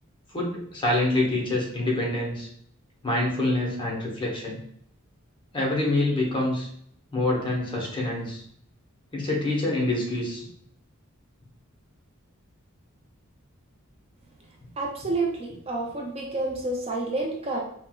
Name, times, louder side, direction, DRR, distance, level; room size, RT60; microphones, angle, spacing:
voice 1, 0.3-2.5 3.0-4.6 5.5-6.7 7.1-8.4 9.1-10.5, left 2 dB, 25° left, -2 dB, 0.7 m, -26 dB
voice 2, 14.8-17.6, right 2 dB, 30° right, -1 dB, 0.4 m, -29 dB
4.3 x 2.0 x 2.2 m, 0.67 s
head